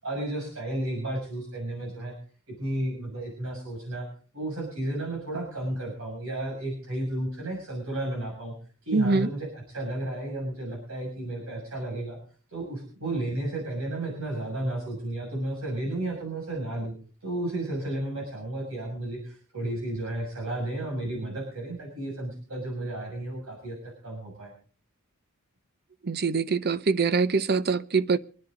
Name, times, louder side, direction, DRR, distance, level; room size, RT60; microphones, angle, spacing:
voice 1, 0.0-2.1 2.5-4.1 4.3-8.6 8.9-12.2 12.5-17.0 17.2-24.5, right 1 dB, 70° right, 6.9 m, -33 dB
voice 2, 8.9-9.3 26.0-28.2, right 4 dB, 50° right, 0.7 m, -24 dB
26.0 x 10.5 x 4.0 m
head